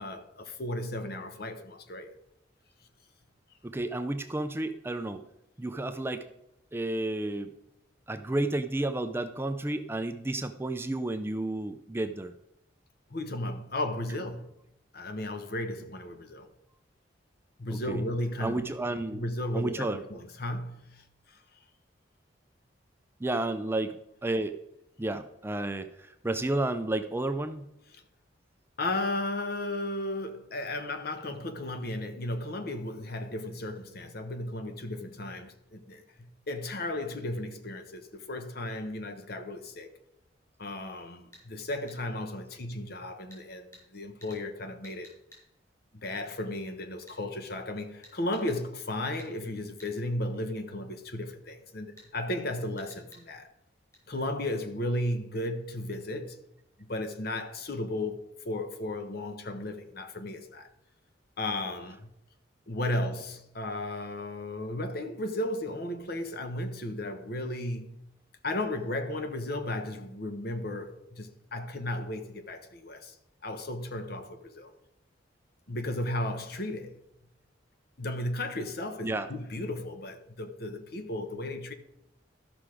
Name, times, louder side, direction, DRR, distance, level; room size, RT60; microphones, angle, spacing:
voice 1, 0.0-2.1 13.1-14.5 14.9-16.5 17.6-18.6 19.1-21.4 27.9-28.0 28.8-39.9 40.6-45.1 45.9-53.5 54.1-56.4 56.9-60.7 61.4-62.1 62.7-68.0 68.4-73.2 73.4-74.7 75.7-77.0 78.0-81.7, left 1 dB, 55° left, 1.0 m, -35 dB
voice 2, 3.6-5.2 5.6-6.3 6.7-7.5 8.1-12.3 17.7-18.0 18.4-19.2 19.5-20.0 23.2-24.0 24.2-24.6 25.0-27.6 79.0-79.3, right 2 dB, 10° right, 0.4 m, -31 dB
sound 1, 41.3-41.5 41.9-42.0 43.3-43.4 43.7-43.9 44.2-44.4 44.8-45.4 47.1-47.2 48.0-48.6 49.2-49.3 49.8-49.9 52.0-52.1 52.8-53.2 53.9-54.0, left 1 dB, 20° left, 4.7 m, -53 dB
13.0 x 6.0 x 4.9 m
head